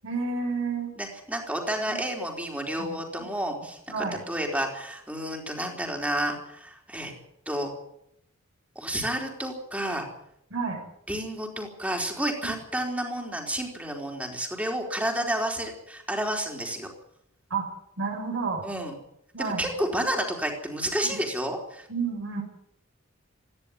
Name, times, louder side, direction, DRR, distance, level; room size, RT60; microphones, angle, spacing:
voice 1, 0.0-0.9 1.9-2.0 2.8-3.3 3.9-4.2 10.5-10.8 12.4-12.5 17.5-17.7 18.0-18.6 19.3-19.7 21.0-21.2 21.9-22.4, right 4 dB, 70° right, 1 dB, 7.4 m, -30 dB
voice 2, 1.0-7.1 7.5-7.7 8.8-10.1 11.1-16.9 18.6-18.9 19.4-21.9, right 1 dB, 5° right, 1 dB, 4.3 m, -30 dB
18.0 x 15.0 x 9.7 m, 0.74 s
head